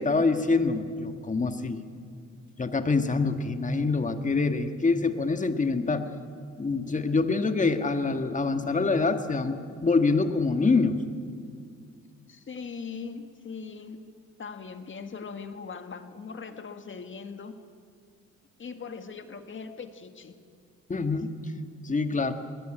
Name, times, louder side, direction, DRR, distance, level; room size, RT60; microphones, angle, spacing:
voice 1, 0.0-1.8 2.6-6.1 6.6-11.0 20.9-21.3 21.8-22.3, left 3 dB, 25° left, 8 dB, 1.7 m, -25 dB
voice 2, 12.3-14.0 14.4-17.6 18.6-20.3, left 5 dB, 40° left, 8 dB, 1.9 m, -40 dB
21.5 x 18.0 x 9.1 m, 2.2 s
cardioid pair, 90°, 30 cm